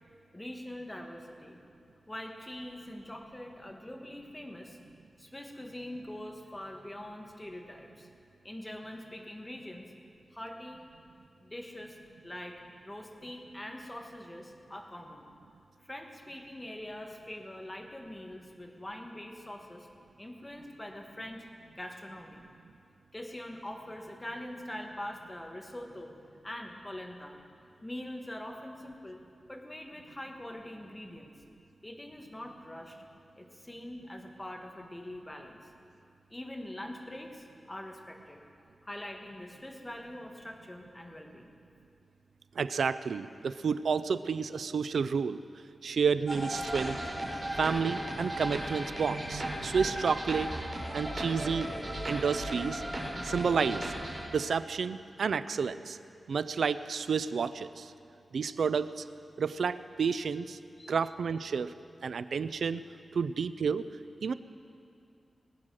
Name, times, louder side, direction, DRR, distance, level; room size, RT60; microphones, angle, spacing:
voice 1, 0.3-1.6 2.1-4.8 5.2-8.1 8.4-9.9 10.3-10.8 11.4-12.0 12.2-15.3 15.8-19.9 20.2-21.5 21.7-22.5 23.1-27.3 27.8-29.2 29.5-31.3 31.8-33.0 33.4-35.7 36.3-38.4 38.8-41.5 60.8-60.9, left 1 dB, 15° left, 2 dB, 1.5 m, -43 dB
voice 2, 42.6-45.4 45.8-47.0 47.6-50.5 50.9-51.7 52.1-52.8 53.2-53.9 54.3-56.0 56.3-57.9 58.3-59.1 59.4-60.6 60.9-61.7 62.0-62.8 63.1-63.9 64.2-64.3, right 6 dB, 90° right, 13 dB, 0.4 m, -30 dB
sound 1, 46.3-54.2, right 1 dB, 25° right, 4.6 m, -36 dB
21.5 x 9.1 x 6.3 m, 2.5 s
wide cardioid pair, 100°, 0 cm